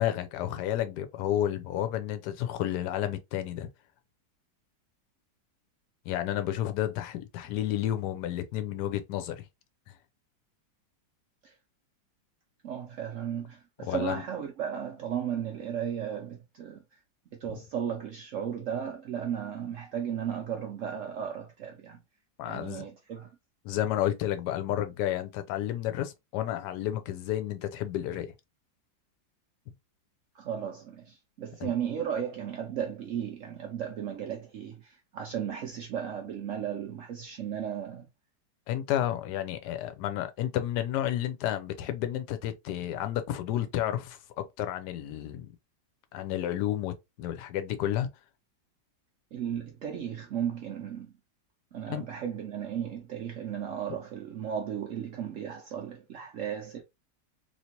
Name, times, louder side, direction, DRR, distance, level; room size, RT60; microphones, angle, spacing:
voice 1, 0.0-3.7 6.1-9.4 13.8-14.2 22.4-22.9 23.6-28.3 31.6-31.7 38.7-45.5 46.1-48.1 51.9-52.0, left 12 dB, 75° left, 1.1 m, -31 dB
voice 2, 12.6-16.8 17.4-22.0 22.4-23.3 30.4-31.0 31.4-34.8 35.1-38.1 49.3-51.1 51.7-56.8, right 8 dB, 85° right, 0.6 m, -35 dB
3.2 x 2.8 x 2.8 m
omnidirectional pair, 2.0 m